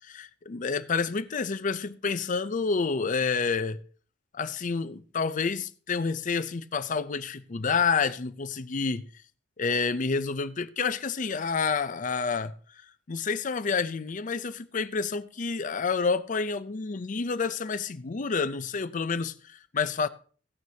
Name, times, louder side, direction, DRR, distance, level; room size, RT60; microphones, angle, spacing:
voice 1, 0.1-3.8 4.3-9.1 9.6-12.5 13.1-20.1, left 5 dB, 45° left, 0.6 m, -29 dB
16.0 x 9.4 x 2.8 m
head